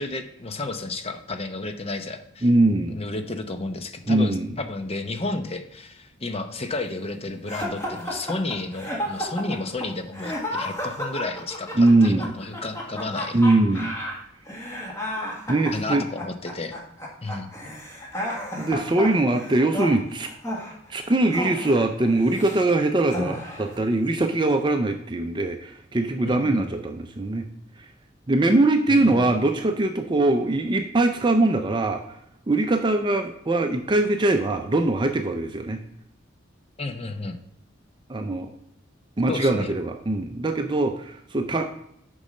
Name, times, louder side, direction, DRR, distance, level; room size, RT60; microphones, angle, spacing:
voice 1, 0.0-2.5 2.9-13.4 15.7-16.8 17.2-17.5 26.2-26.7 28.9-29.3 36.8-37.4 39.3-39.7, left 2 dB, 30° left, 8 dB, 0.8 m, -32 dB
voice 2, 2.4-2.9 4.1-4.5 11.8-12.3 13.3-14.0 15.5-16.0 18.6-20.3 20.9-27.5 27.8-27.9 28.3-32.2 32.5-35.8 38.1-38.5 39.2-41.7, right 2 dB, 25° right, 5 dB, 0.5 m, -22 dB
sound 1, 7.5-22.6 23.1-23.8, equal, 15° left, 1.7 m, -32 dB
6.8 x 5.4 x 6.4 m, 0.73 s
head